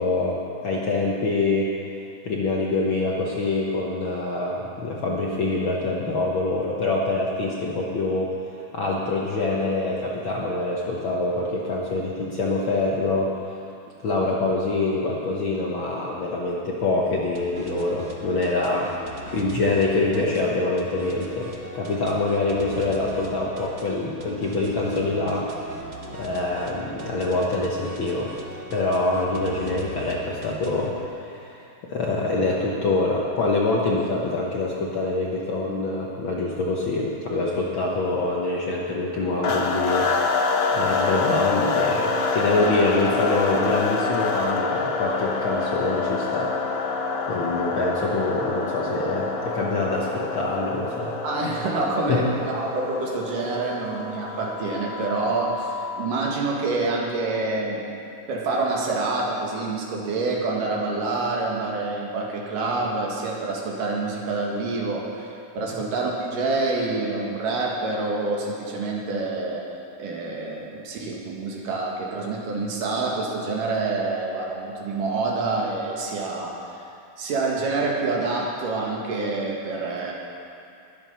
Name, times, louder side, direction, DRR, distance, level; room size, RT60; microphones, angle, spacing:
voice 1, 0.0-1.7 2.2-13.5 14.0-25.5 26.1-28.3 28.7-46.5 47.3-51.1 52.1-52.2, left 2 dB, 60° left, -3 dB, 1.4 m, -25 dB
sound 1, 17.3-31.1, right 3 dB, 70° right, 0.7 m, -40 dB
sound 2, 39.4-56.1, left 4 dB, 75° left, 1.1 m, -27 dB
voice 2, 51.2-57.9 58.3-69.7 70.0-76.6 77.2-80.1, right 3 dB, 85° right, -1 dB, 3.4 m, -27 dB
21.5 x 8.1 x 5.5 m, 2.5 s
omnidirectional pair, 3.7 m